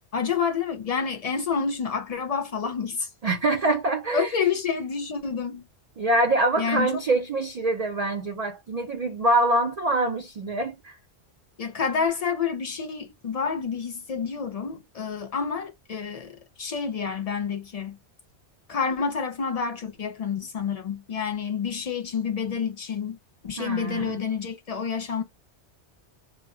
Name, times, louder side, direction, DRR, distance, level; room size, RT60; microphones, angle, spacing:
voice 1, 0.0-3.1 4.1-5.7 6.6-6.9 11.6-18.0 18.7-25.2, left 6 dB, 60° left, 0.4 m, -29 dB
voice 2, 3.2-4.3 6.0-11.0 23.6-24.2, right 2 dB, 60° right, 0.4 m, -25 dB
2.0 x 2.0 x 3.5 m
omnidirectional pair, 1.2 m